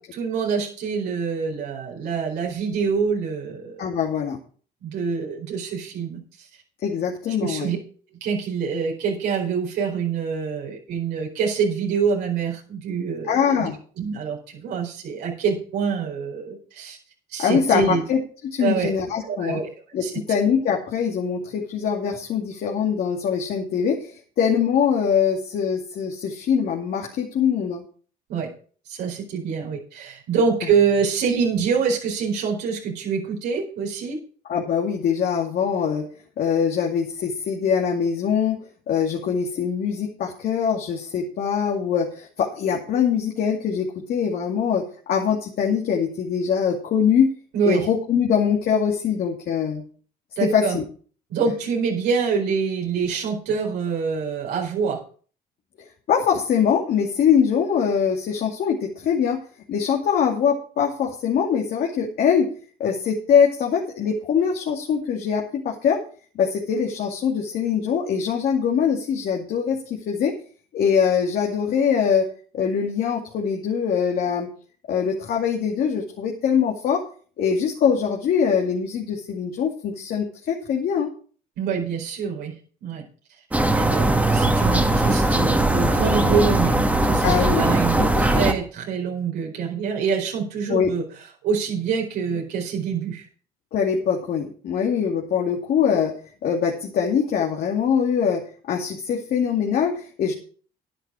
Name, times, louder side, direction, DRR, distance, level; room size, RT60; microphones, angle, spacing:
voice 1, 0.1-3.9 4.8-6.5 7.4-7.8 8.2-13.7 14.0-17.0 17.3-18.0 18.6-18.9 19.3-19.7 20.0-20.1 28.3-28.5 28.9-34.2 47.5-47.8 50.4-50.8 51.3-55.0 81.6-82.5 82.8-83.0 83.7-91.0 91.4-93.3, right 6 dB, 80° right, -2 dB, 4.6 m, -25 dB
voice 2, 3.8-4.4 6.8-7.7 13.3-13.8 17.4-19.6 19.9-27.8 34.5-36.1 36.4-38.6 38.9-47.3 47.7-49.8 50.4-50.8 56.1-59.4 59.7-62.5 62.8-66.0 66.3-70.3 70.7-72.3 72.5-74.5 74.9-77.0 77.4-81.1 87.2-88.1 90.7-90.9 93.7-96.1 96.4-98.4 98.7-100.3, left 7 dB, 65° left, 0 dB, 2.4 m, -23 dB
sound 1, 83.5-88.5, right 1 dB, 10° right, 1.9 m, -20 dB
10.5 x 10.0 x 4.9 m, 0.43 s
cardioid pair, 110°, 17 cm